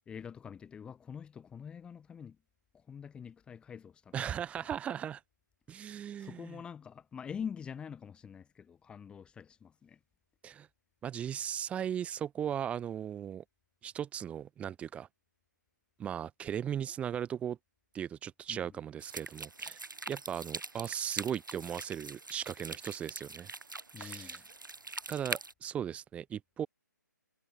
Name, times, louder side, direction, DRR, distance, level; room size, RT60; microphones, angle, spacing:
voice 1, 0.1-2.4 2.7-4.2 4.6-4.7 5.7-10.0 18.5-18.8 23.9-24.5, left 7 dB, 10° left, 1.7 m, -45 dB
voice 2, 4.1-5.2 5.7-6.6 10.4-10.7 11.0-13.4 13.8-15.1 16.0-17.6 17.9-19.8 20.1-23.5 24.0-24.4 25.1-26.7, right 9 dB, 10° right, 2.2 m, -37 dB
sound 1, 19.0-25.5, right 3 dB, 85° right, 2.0 m, -43 dB
figure-of-eight pair, 140°, 10 cm